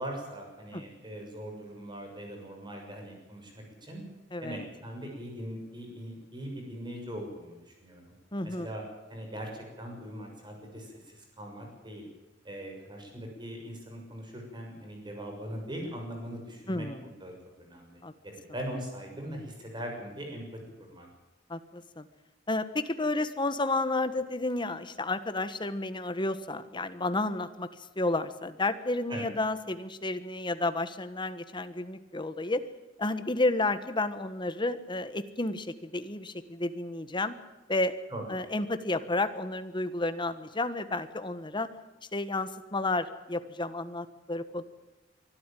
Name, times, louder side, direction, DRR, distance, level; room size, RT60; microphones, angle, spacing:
voice 1, 0.0-3.5 3.8-4.0 4.4-8.1 8.4-8.8 9.1-12.1 12.4-16.9 17.2-17.3 17.6-20.4 20.8-21.1 29.1-29.3 38.1-38.3, equal, 25° right, 2 dB, 6.9 m, -41 dB
voice 2, 4.3-4.7 8.3-8.7 16.7-17.1 18.0-18.1 21.5-22.1 22.5-27.7 28.0-32.7 33.0-37.3 37.7-38.0 38.3-41.7 42.1-44.6, left 2 dB, 25° left, 11 dB, 1.3 m, -31 dB
23.5 x 12.5 x 9.2 m, 1.1 s
head